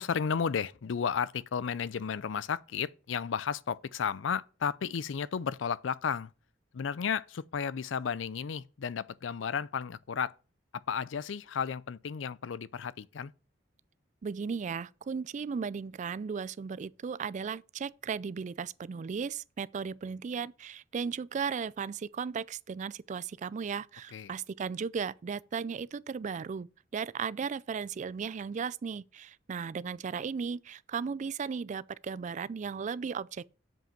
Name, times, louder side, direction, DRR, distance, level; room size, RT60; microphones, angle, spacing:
voice 1, 0.0-6.3 6.7-10.3 10.7-13.3 24.1-24.3, left 6 dB, 75° left, 0.4 m, -33 dB
voice 2, 14.2-26.7 26.9-33.5, right 6 dB, 40° right, 0.3 m, -36 dB
7.6 x 5.4 x 5.8 m
head